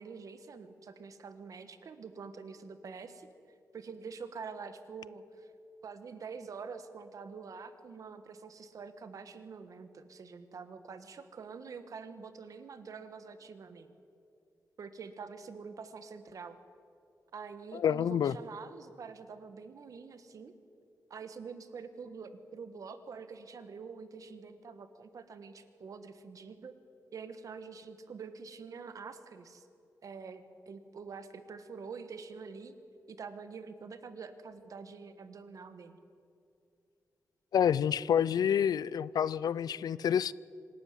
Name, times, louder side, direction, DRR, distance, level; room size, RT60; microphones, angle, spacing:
voice 1, 0.0-3.3 3.7-5.5 5.8-13.9 14.8-16.6 17.3-20.5 21.1-26.8 27.1-29.6 30.0-32.7 33.1-36.0, right 5 dB, 60° right, 1.4 m, -46 dB
voice 2, 17.7-18.3 37.5-40.3, left 8 dB, 80° left, 0.4 m, -28 dB
26.0 x 12.5 x 9.5 m
wide cardioid pair, 160°, 7 cm